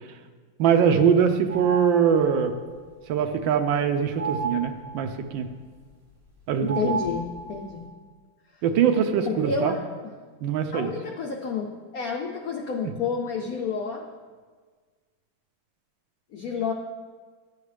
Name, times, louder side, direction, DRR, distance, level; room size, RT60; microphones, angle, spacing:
voice 1, 0.6-2.6 3.1-5.5 6.5-6.9 8.6-9.7 10.4-10.9, right 7 dB, 75° right, 7 dB, 1.2 m, -22 dB
sound 1, 1.5-2.5 4.2-5.2 6.7-7.8, right 4 dB, 30° right, 2.4 m, -32 dB
voice 2, 6.7-7.2 7.5-7.8 9.2-9.8 10.7-14.1 16.3-16.7, left 5 dB, 80° left, 1 dB, 0.8 m, -29 dB
10.5 x 7.1 x 3.3 m, 1.5 s
omnidirectional pair, 2.3 m